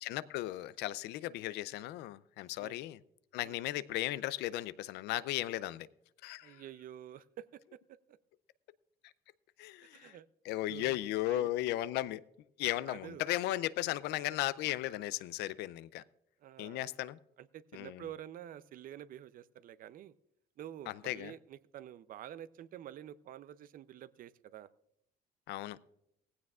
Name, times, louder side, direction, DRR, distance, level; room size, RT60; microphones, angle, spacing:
voice 1, 0.0-3.0 3.3-5.9 6.2-6.6 9.6-10.2 10.4-12.2 12.6-16.0 16.6-17.2 17.7-18.0 20.9-21.3 25.5-25.8, left 15 dB, 85° left, 0.5 m, -36 dB
voice 2, 6.4-7.8 8.1-8.2 9.8-10.3 10.7-11.0 11.3-11.5 12.9-13.3 16.4-16.9 17.4-20.1 20.6-24.7, right 11 dB, 55° right, 0.5 m, -49 dB
17.0 x 15.5 x 2.4 m
cardioid pair, 110°, 17 cm